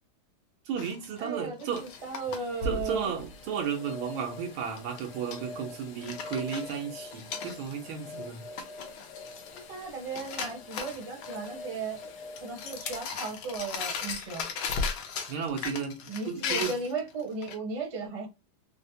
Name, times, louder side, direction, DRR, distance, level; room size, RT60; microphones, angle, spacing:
voice 1, 0.7-1.8 2.6-8.4 15.3-16.7, right 7 dB, 85° right, 1.7 m, -34 dB
sound 1, 0.8-2.4 2.8-2.9 3.2-3.7 4.8-5.4 5.8-7.9 8.2-8.3 8.6-9.8 10.1-11.5 12.0-12.1 12.4-17.5, left 6 dB, 85° left, 1.6 m, -37 dB
voice 2, 1.2-3.1 9.5-12.0 12.4-14.5 16.1-18.3, right 4 dB, 30° right, 0.6 m, -36 dB
sound 2, 1.7-15.0 15.5-15.6, left 3 dB, 65° left, 1.1 m, -41 dB
4.3 x 2.1 x 2.7 m
omnidirectional pair, 2.2 m